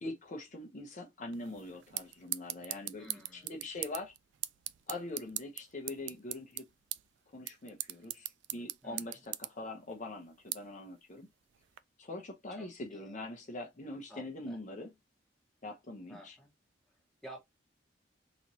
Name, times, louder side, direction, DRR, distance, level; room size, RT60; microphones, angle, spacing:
voice 1, 0.0-3.1 3.3-4.1 4.9-6.7 7.3-11.3 12.0-14.9 15.6-16.4, left 2 dB, 40° left, 0.8 m, -43 dB
sound 1, 1.3-11.8, right 15 dB, 70° right, 0.3 m, -43 dB
voice 2, 3.0-3.6 8.8-9.2 12.5-13.2 14.1-14.6 16.1-16.5 16.9-17.4, right 1 dB, ahead, 1.3 m, -52 dB
4.0 x 3.0 x 2.7 m
head